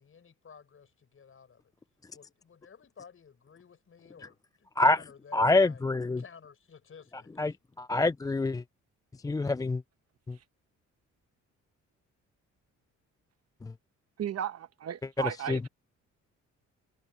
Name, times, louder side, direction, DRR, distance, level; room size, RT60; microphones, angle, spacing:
voice 1, 0.0-1.7 2.1-5.8 6.2-7.6, left 6 dB, 45° left, 6.2 m, -54 dB
voice 2, 5.3-6.2 7.4-8.6 9.2-9.8 10.3-10.4 15.5-15.6, left 2 dB, 10° left, 0.4 m, -26 dB
voice 3, 14.2-15.7, right 10 dB, 55° right, 1.1 m, -35 dB
cardioid pair, 90°, 30 cm